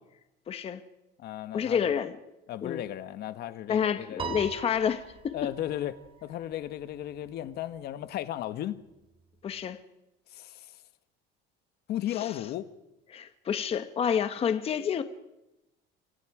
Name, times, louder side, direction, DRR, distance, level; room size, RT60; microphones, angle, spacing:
voice 1, 0.5-0.8 1.5-2.1 2.6-2.8 3.7-5.3 9.4-9.8 12.1-12.4 13.1-15.0, left 8 dB, 30° left, 1.2 m, -29 dB
voice 2, 1.2-2.0 2.5-4.3 5.3-8.8 10.3-10.8 11.9-12.7, left 12 dB, 50° left, 1.3 m, -35 dB
Piano, 4.2-6.7, right 6 dB, 25° right, 3.3 m, -40 dB
29.0 x 26.0 x 4.9 m
cardioid pair, 165°, 21 cm